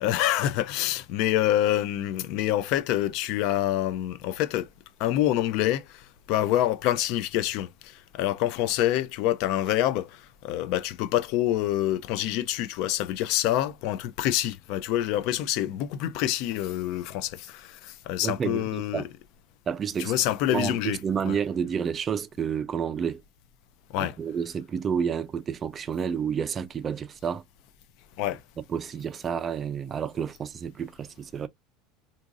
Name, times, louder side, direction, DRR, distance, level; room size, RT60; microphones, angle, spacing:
voice 1, 0.0-4.7 5.0-19.1 20.0-21.0 21.3-21.4 23.9-24.2 28.2-28.4, left 13 dB, 55° left, 0.4 m, -26 dB
voice 2, 18.2-19.0 19.7-20.1 20.5-23.2 24.0-27.4 28.7-31.5, right 7 dB, 25° right, 0.3 m, -30 dB
3.8 x 2.6 x 2.3 m
supercardioid pair, 155°, 0 cm